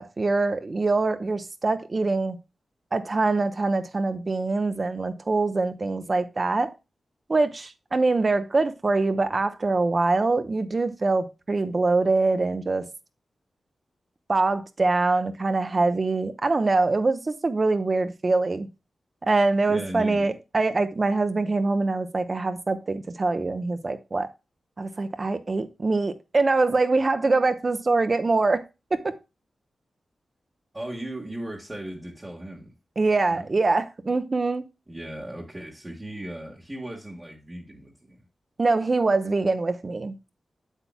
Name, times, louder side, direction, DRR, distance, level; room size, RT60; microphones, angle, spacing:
voice 1, 0.0-2.4 2.9-6.7 7.3-12.9 14.3-18.7 19.2-24.3 24.8-28.6 28.9-29.0 33.0-34.6 38.6-40.2, right 3 dB, 30° right, 0.9 m, -24 dB
voice 2, 19.7-20.3 30.7-32.7 33.3-33.5 34.9-38.2, right 1 dB, 15° right, 1.5 m, -37 dB
8.8 x 8.3 x 2.3 m
wide cardioid pair, 160°, 0 cm